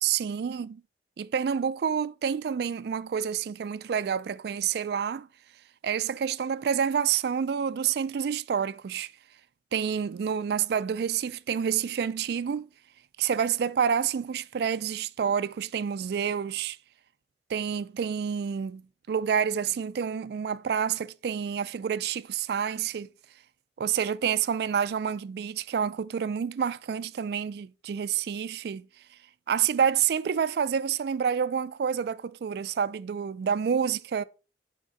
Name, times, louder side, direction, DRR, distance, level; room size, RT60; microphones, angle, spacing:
voice 1, 0.0-0.8 1.2-5.3 5.8-9.1 9.7-12.7 13.2-16.8 17.5-18.8 19.1-23.1 23.8-28.9 29.5-34.2, right 7 dB, 60° right, 0.3 m, -28 dB
8.1 x 3.6 x 4.1 m
head